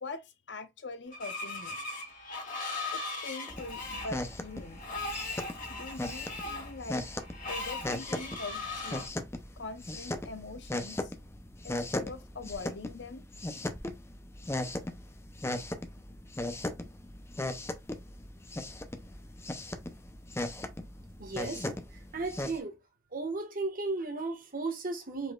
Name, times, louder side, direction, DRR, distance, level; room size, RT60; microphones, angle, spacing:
voice 1, 0.0-1.8 2.9-4.8 5.7-7.1 7.5-9.1 9.6-11.1 11.6-13.3, left 3 dB, 70° left, 0.8 m, -43 dB
Screech, 1.1-9.1, left 3 dB, 45° left, 2.1 m, -39 dB
sound 1, 3.5-22.6, left 1 dB, 15° left, 0.6 m, -38 dB
voice 2, 21.2-22.7 23.1-25.3, right 3 dB, 50° right, 1.6 m, -35 dB
5.0 x 4.1 x 2.4 m
head